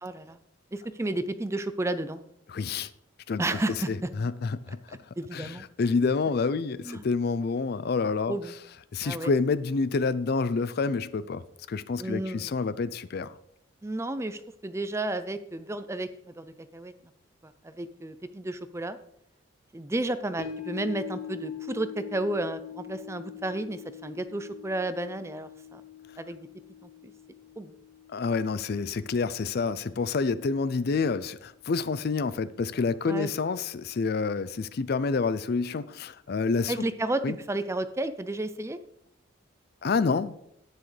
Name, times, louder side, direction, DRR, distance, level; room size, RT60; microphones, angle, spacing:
voice 1, 0.0-0.4 0.7-2.2 3.4-4.1 4.7-5.6 6.8-7.1 8.3-8.6 9.0-9.3 12.0-12.6 13.8-16.1 16.4-16.9 17.4-19.0 19.7-25.8 26.2-26.5 26.8-27.1 27.6-27.7 33.1-33.3 36.7-37.2 37.5-38.8, right 2 dB, 15° right, 0.4 m, -32 dB
voice 2, 2.5-2.9 3.3-3.4 3.9-4.8 5.3-8.4 8.9-11.4 11.7-13.3 28.1-36.7 37.2-37.4 39.8-40.4, left 4 dB, 50° left, 0.4 m, -28 dB
sound 1, 20.4-30.8 31.1-31.2, left 9 dB, 30° left, 1.6 m, -44 dB
11.0 x 9.4 x 3.3 m
head